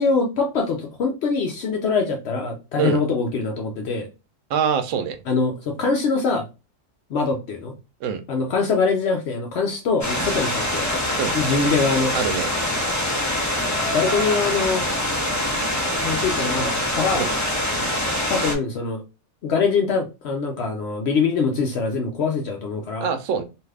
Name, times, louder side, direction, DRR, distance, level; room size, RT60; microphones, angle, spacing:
voice 1, 0.0-4.1 5.3-6.4 7.1-7.7 8.3-10.9 11.3-12.1 13.9-14.9 16.0-17.2 18.3-19.0 19.4-23.1, left 4 dB, 65° left, 2 dB, 0.8 m, -23 dB
voice 2, 4.5-5.2 8.0-8.2 11.2-11.4 12.1-12.5 17.1-17.3 23.0-23.4, right 7 dB, 85° right, 9 dB, 0.9 m, -24 dB
sound 1, 10.0-18.6, left 1 dB, 25° left, 0.4 m, -24 dB
2.7 x 2.4 x 3.2 m, 0.28 s
omnidirectional pair, 1.3 m